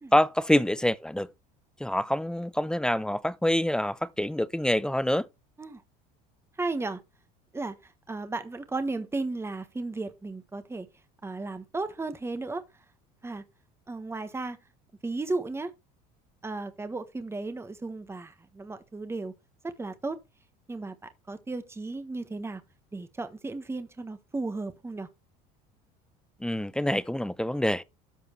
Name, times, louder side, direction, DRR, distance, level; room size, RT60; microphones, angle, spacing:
voice 1, 0.1-1.3 1.8-5.3 26.4-27.8, left 1 dB, 5° left, 0.5 m, -26 dB
voice 2, 6.6-7.0 7.5-10.9 11.2-12.6 13.2-13.4 13.9-14.6 15.0-15.7 16.4-19.3 19.6-20.2 20.7-22.6 22.9-25.1, right 3 dB, 15° right, 1.3 m, -34 dB
13.5 x 5.0 x 3.1 m
supercardioid pair, 90°, 20 cm